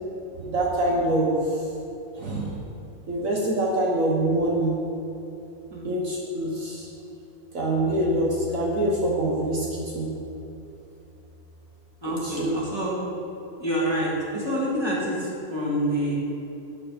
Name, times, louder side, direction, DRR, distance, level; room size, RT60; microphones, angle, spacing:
voice 1, 0.5-1.6 2.1-2.6 3.1-4.7 5.8-6.9 7.5-9.7 9.9-10.1 12.0-12.5, right 1 dB, 65° right, -3 dB, 1.7 m, -25 dB
voice 2, 12.0-12.9 13.6-16.2, equal, 15° right, -5 dB, 2.6 m, -27 dB
13.0 x 8.0 x 5.2 m, 2.9 s
omnidirectional pair, 1.5 m